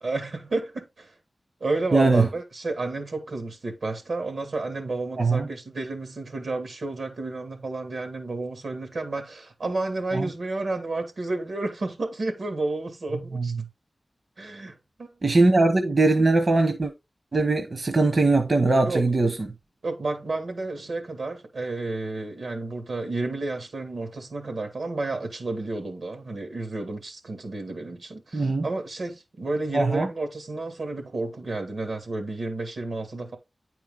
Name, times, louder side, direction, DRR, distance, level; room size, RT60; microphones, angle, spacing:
voice 1, 0.0-1.1 1.6-13.5 14.4-15.1 18.8-19.0 19.8-33.4, right 2 dB, 85° right, 2.2 m, -31 dB
voice 2, 1.9-2.3 5.2-5.5 10.1-10.3 13.3-13.5 15.2-16.9 17.3-19.3 28.3-28.7 29.7-30.1, right 3 dB, 55° right, 1.0 m, -20 dB
9.5 x 4.5 x 3.6 m
wide cardioid pair, 85°, 0 cm